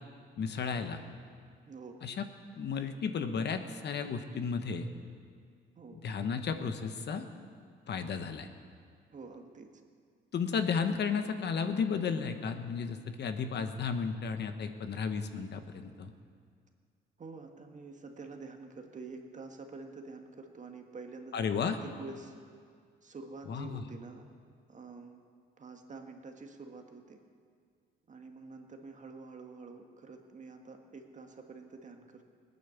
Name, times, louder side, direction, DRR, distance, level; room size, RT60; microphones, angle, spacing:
voice 1, 0.4-1.0 2.0-2.2 2.6-4.9 5.9-7.3 7.9-8.5 10.3-16.1 21.3-21.8 23.5-23.8, left 6 dB, 60° left, 8 dB, 1.1 m, -33 dB
voice 2, 1.7-2.0 5.7-6.0 9.1-9.7 17.2-21.3 21.8-22.3 23.0-24.2 24.7-25.2 25.6-27.2 28.1-32.2, right 3 dB, 40° right, 4 dB, 1.7 m, -47 dB
18.0 x 9.5 x 7.1 m, 2.1 s
cardioid pair, 90°, 20 cm